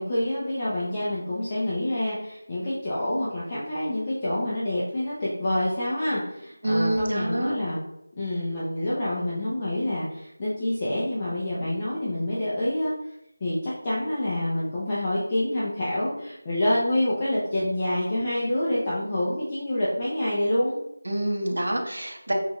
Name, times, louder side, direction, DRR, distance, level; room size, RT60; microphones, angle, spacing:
voice 1, 0.0-7.8 8.2-12.9 13.4-20.8, left 1 dB, 15° left, -9 dB, 0.6 m, -27 dB
voice 2, 6.6-7.6 21.0-22.3, right 1 dB, 75° right, 1 dB, 1.1 m, -26 dB
6.1 x 2.5 x 3.0 m, 0.82 s
figure-of-eight pair, 175°, 0 cm